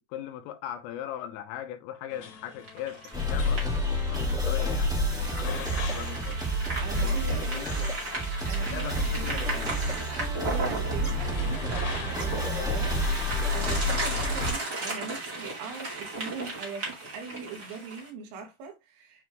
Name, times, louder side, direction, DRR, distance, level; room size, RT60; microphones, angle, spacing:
voice 1, 0.1-3.7 4.1-6.4 7.0-7.9 8.7-9.7 11.0-11.2, left 11 dB, 80° left, 3.5 m, -39 dB
sound 1, 2.1-14.3, left 6 dB, 55° left, 2.4 m, -45 dB
sound 2, 2.6-18.1, right 2 dB, 65° right, 0.9 m, -36 dB
sound 3, 3.1-14.5, equal, 5° right, 0.4 m, -29 dB
voice 2, 6.8-7.7 8.5-9.4 10.4-19.2, right 4 dB, 85° right, 4.6 m, -41 dB
10.0 x 3.6 x 3.0 m
omnidirectional pair, 6.0 m